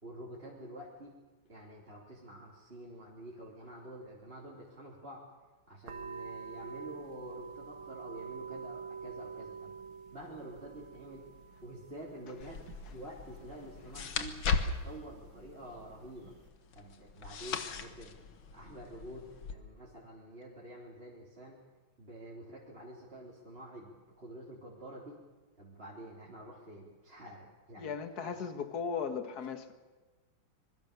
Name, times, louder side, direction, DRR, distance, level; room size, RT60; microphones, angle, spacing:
voice 1, 0.0-1.2 1.5-5.2 5.7-9.8 10.1-11.2 11.6-12.6 12.9-14.4 14.6-16.4 16.7-18.2 18.5-21.6 22.0-25.2 25.6-27.9 28.2-28.3, right 1 dB, 25° right, -5 dB, 3.7 m, -48 dB
sound 1, 5.9-16.5, right 5 dB, 70° right, 2.2 m, -48 dB
sound 2, 12.4-19.5, left 5 dB, 70° left, 2.2 m, -38 dB
voice 2, 27.8-29.7, left 6 dB, 50° left, 9 dB, 2.0 m, -37 dB
26.0 x 22.5 x 6.8 m, 1.3 s
omnidirectional pair, 2.3 m